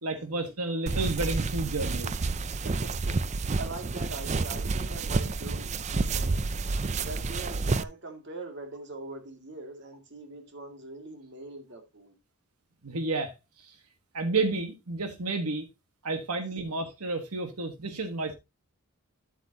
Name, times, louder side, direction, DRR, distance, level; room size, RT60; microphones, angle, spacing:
voice 1, 0.0-2.3 12.8-13.8 14.1-15.7 16.0-18.3, right 3 dB, 90° right, 1.4 m, -31 dB
sound 1, 0.9-7.8, right 3 dB, 30° right, 0.4 m, -29 dB
voice 2, 2.5-3.2 3.6-6.5 7.0-12.1, right 2 dB, 50° right, 2.3 m, -42 dB
11.5 x 7.9 x 2.8 m
head